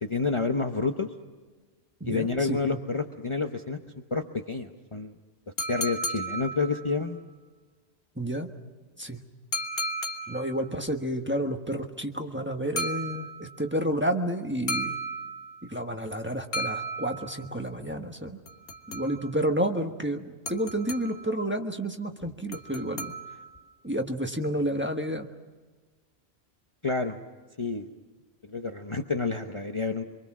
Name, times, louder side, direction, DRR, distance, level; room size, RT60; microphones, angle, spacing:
voice 1, 0.0-1.1 2.0-3.8 4.1-5.1 5.7-7.2 26.8-27.2 27.6-27.9 28.4-30.0, left 4 dB, 30° left, 4 dB, 1.0 m, -29 dB
voice 2, 2.0-2.8 8.2-8.5 9.0-9.2 10.3-15.0 15.7-18.4 18.9-23.1 23.8-25.3, right 1 dB, 10° right, 3 dB, 1.4 m, -30 dB
sound 1, 5.6-7.1 9.5-10.7 12.8-13.6 14.7-15.7 16.5-17.5 18.5-19.4 20.5-21.4 22.5-23.6, right 1 dB, 65° left, 1.7 m, -34 dB
25.5 x 24.0 x 6.2 m, 1.3 s
omnidirectional pair, 1.1 m